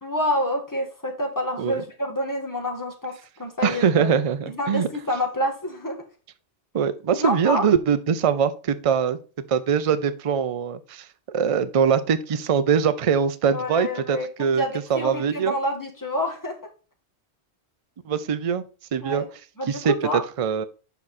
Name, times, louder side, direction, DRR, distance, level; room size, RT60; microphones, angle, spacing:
voice 1, 0.0-4.1 4.5-6.0 7.2-7.7 13.5-14.3 14.6-16.6 18.1-18.2 19.0-19.3 19.6-20.2, left 1 dB, 15° left, 1 dB, 1.5 m, -27 dB
voice 2, 3.6-4.9 6.7-9.2 9.5-14.6 14.9-15.5 18.1-18.6 18.9-19.2 19.7-19.9 20.4-20.6, right 7 dB, 45° right, 11 dB, 0.5 m, -22 dB
6.9 x 4.9 x 4.2 m, 0.35 s
omnidirectional pair, 1.1 m